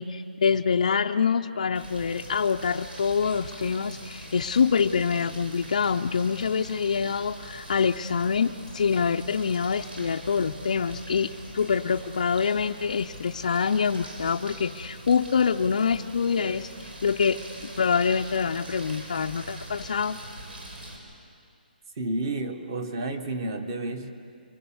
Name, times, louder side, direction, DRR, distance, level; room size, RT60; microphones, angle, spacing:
voice 1, 0.0-16.7 17.0-17.4 17.8-20.2, left 6 dB, 45° left, 3 dB, 0.5 m, -25 dB
sound 1, 1.7-21.0, right 1 dB, 80° right, 5.8 m, -43 dB
voice 2, 22.0-24.1, right 2 dB, 25° right, 8 dB, 1.2 m, -31 dB
25.5 x 23.5 x 7.1 m, 2.5 s
hypercardioid pair, 180°, 5 cm